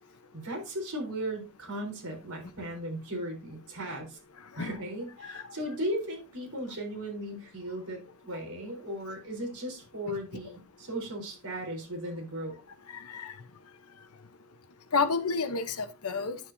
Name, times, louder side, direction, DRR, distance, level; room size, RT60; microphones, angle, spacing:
voice 1, 0.3-4.2 4.6-12.5, right 1 dB, 80° right, 3.9 m, -36 dB
voice 2, 13.0-13.3 14.9-16.4, left 4 dB, 75° left, 0.9 m, -30 dB
10.0 x 7.3 x 2.7 m
head